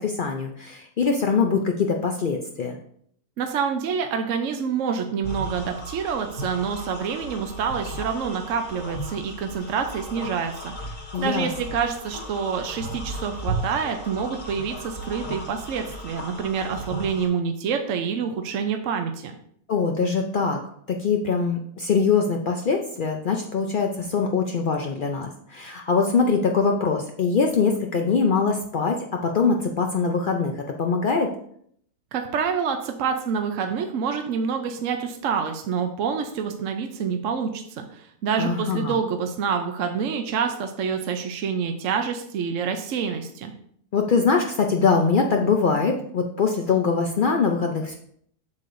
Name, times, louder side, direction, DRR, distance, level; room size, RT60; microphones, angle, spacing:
voice 1, 0.0-2.8 11.1-11.5 19.7-20.6 20.9-31.3 38.4-39.0 43.9-47.9, left 5 dB, 85° left, 2 dB, 0.4 m, -23 dB
voice 2, 3.4-19.3 32.1-43.5, right 6 dB, 65° right, 5 dB, 0.9 m, -27 dB
sound 1, 5.2-17.3, right 1 dB, 55° left, 2.1 m, -35 dB
8.4 x 6.6 x 2.6 m, 0.65 s
omnidirectional pair, 1.6 m